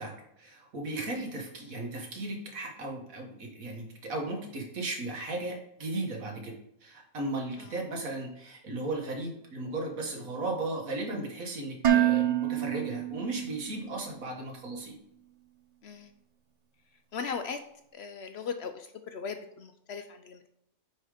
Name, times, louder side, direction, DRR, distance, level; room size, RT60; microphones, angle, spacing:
voice 1, 0.0-6.6 6.8-15.0, right 2 dB, 80° right, 1 dB, 2.0 m, -36 dB
Dishes pots and pans, 11.8-13.9, right 12 dB, 55° right, 0.4 m, -27 dB
voice 2, 17.1-17.6 17.9-20.5, left 6 dB, 60° left, 8 dB, 0.7 m, -38 dB
8.9 x 3.9 x 4.9 m, 0.78 s
omnidirectional pair, 1.4 m